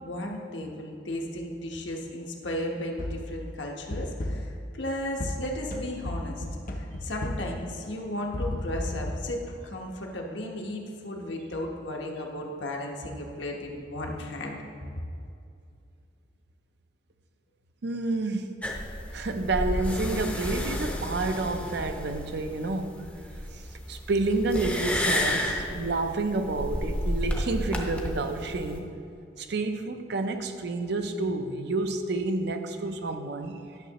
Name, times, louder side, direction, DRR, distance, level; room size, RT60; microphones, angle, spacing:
voice 1, 0.0-6.4 6.7-14.6, left 1 dB, 70° left, 0 dB, 1.0 m, -35 dB
sound 1, 3.0-3.4 3.9-4.6 5.2-7.6 8.3-9.1, left 1 dB, 45° left, 0.7 m, -33 dB
voice 2, 17.8-18.6 19.1-23.1 23.5-23.6 23.9-28.9 29.4-33.6, right 2 dB, 60° right, 7 dB, 0.5 m, -29 dB
sound 2, 18.6-28.8, left 1 dB, 5° left, 0.6 m, -32 dB
11.5 x 6.3 x 2.9 m, 2.5 s
head